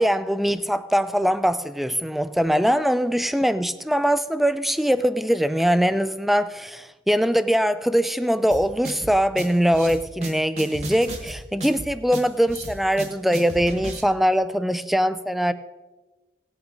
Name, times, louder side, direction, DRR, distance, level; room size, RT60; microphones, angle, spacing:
voice 1, 0.0-15.5, equal, ahead, 13 dB, 0.4 m, -22 dB
sound 1, 8.5-14.0, right 1 dB, 35° right, 1.4 m, -35 dB
17.5 x 8.8 x 3.8 m, 1.2 s
head